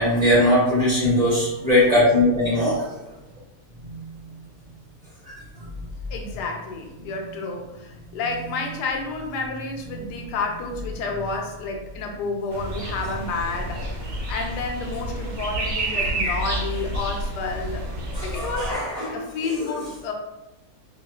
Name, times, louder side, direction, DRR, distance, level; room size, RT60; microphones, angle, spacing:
voice 1, 0.0-2.9 3.8-4.0 5.3-5.7 18.1-19.2 19.6-19.7, left 1 dB, 30° right, -8 dB, 0.8 m, -20 dB
voice 2, 6.1-13.9 14.3-17.8 18.2-18.8 19.1-20.1, left 3 dB, 85° left, 2 dB, 1.2 m, -30 dB
sound 1, 12.5-18.7, right 1 dB, 55° right, 1.0 m, -29 dB
4.6 x 2.1 x 2.3 m, 0.98 s
omnidirectional pair, 1.7 m